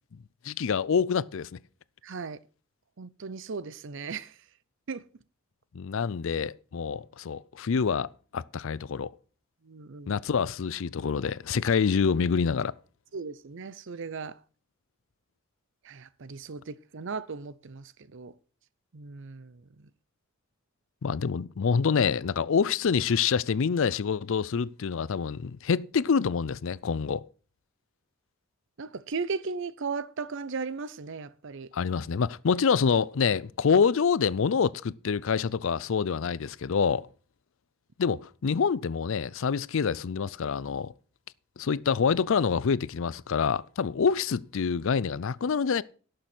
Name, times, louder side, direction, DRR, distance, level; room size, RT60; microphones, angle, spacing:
voice 1, 0.4-1.6 5.7-9.1 10.1-12.7 21.0-27.2 31.7-37.1 38.0-40.9 41.6-45.8, left 6 dB, 65° left, 0.5 m, -26 dB
voice 2, 2.0-2.4 3.0-4.3 4.9-5.0 9.6-10.1 13.1-14.4 15.8-18.3 18.9-19.9 28.8-31.7, right 4 dB, 60° right, 0.6 m, -37 dB
11.5 x 6.7 x 6.1 m
head